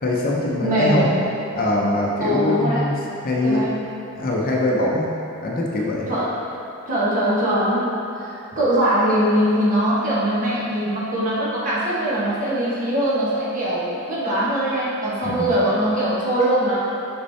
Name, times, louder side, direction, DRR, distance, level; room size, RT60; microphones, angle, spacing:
voice 1, 0.0-1.1 1.5-2.9 3.2-3.7 4.2-5.1 5.4-6.1 15.2-15.5, left 1 dB, 40° left, -3 dB, 0.6 m, -22 dB
voice 2, 0.6-1.2 2.2-2.8 3.4-3.8 6.1-6.3 6.9-7.9 8.2-16.9, right 1 dB, 35° right, -9 dB, 1.2 m, -21 dB
6.6 x 5.3 x 2.7 m, 2.7 s
head